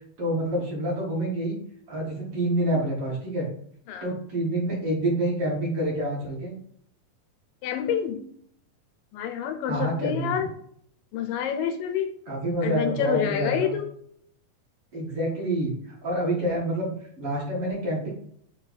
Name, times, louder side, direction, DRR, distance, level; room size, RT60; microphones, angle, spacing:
voice 1, 0.2-1.6 1.9-3.5 4.0-6.5 9.7-10.3 12.3-13.7 14.9-15.7 16.0-16.9 17.2-18.1, right 1 dB, 50° right, -4 dB, 2.3 m, -27 dB
voice 2, 7.6-8.2 9.1-10.5 11.1-12.1 12.6-13.9, left 8 dB, 80° left, 8 dB, 2.4 m, -28 dB
7.0 x 3.6 x 4.5 m, 0.64 s
omnidirectional pair, 4.0 m